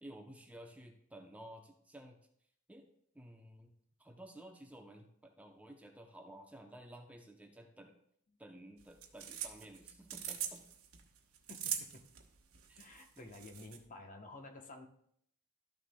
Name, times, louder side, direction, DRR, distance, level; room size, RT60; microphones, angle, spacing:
voice 1, 0.0-2.2 2.7-2.9 3.1-3.7 4.0-7.9 8.4-10.7 12.7-12.9 13.2-13.3, right 1 dB, 5° right, 3 dB, 0.6 m, -54 dB
sound 1, 8.8-13.8, right 9 dB, 75° right, 1.0 m, -43 dB
voice 2, 11.5-12.0 12.8-14.9, left 2 dB, 40° left, 4 dB, 0.8 m, -52 dB
12.5 x 6.4 x 2.2 m, 0.68 s
head